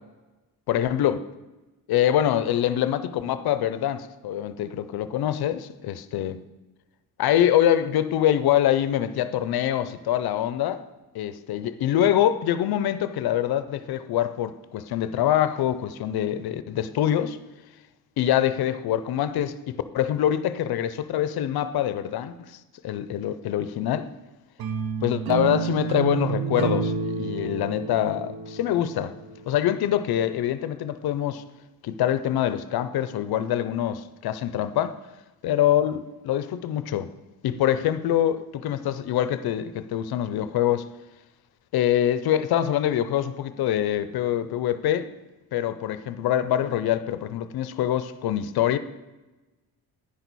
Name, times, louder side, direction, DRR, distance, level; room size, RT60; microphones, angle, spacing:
voice 1, 0.7-1.2 1.9-6.5 7.2-10.8 11.1-17.4 18.2-22.6 22.8-24.1 25.0-29.1 29.5-31.4 31.8-35.0 35.4-37.1 37.4-40.9 41.7-45.1 45.5-48.8, left 11 dB, 80° left, 0.6 m, -24 dB
sound 1, 24.6-29.7, right 6 dB, 70° right, 0.7 m, -30 dB
9.8 x 6.1 x 4.1 m
cardioid pair, 80°, 37 cm